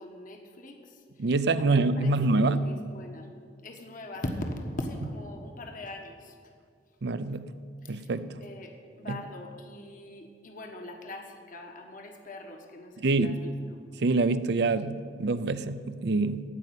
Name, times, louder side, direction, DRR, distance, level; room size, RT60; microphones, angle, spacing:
voice 1, 0.0-1.3 1.6-3.3 3.6-6.4 7.8-8.1 8.4-13.6, left 1 dB, 50° left, 3 dB, 1.3 m, -41 dB
voice 2, 1.2-2.7 7.0-7.5 7.9-8.4 9.1-9.2 13.0-13.4 14.0-16.4, right 3 dB, 65° right, 13 dB, 0.5 m, -26 dB
15.5 x 5.4 x 9.3 m, 2.1 s
head